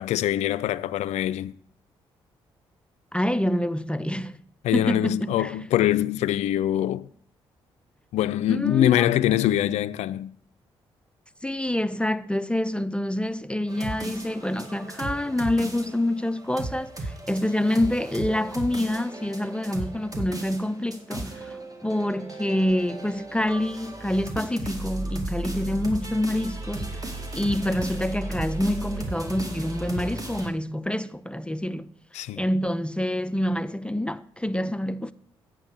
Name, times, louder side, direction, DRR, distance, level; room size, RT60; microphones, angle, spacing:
voice 1, 0.0-1.5 4.6-7.1 8.1-10.3 32.1-32.5, left 12 dB, 65° left, 0.4 m, -24 dB
voice 2, 3.1-4.4 4.7-5.5 8.5-9.1 11.4-27.1 27.4-31.9 32.4-35.1, left 1 dB, 10° left, 0.4 m, -27 dB
sound 1, 13.7-30.5, right 2 dB, 30° right, 2.1 m, -35 dB
9.0 x 6.0 x 6.4 m
hypercardioid pair, 40°, 12 cm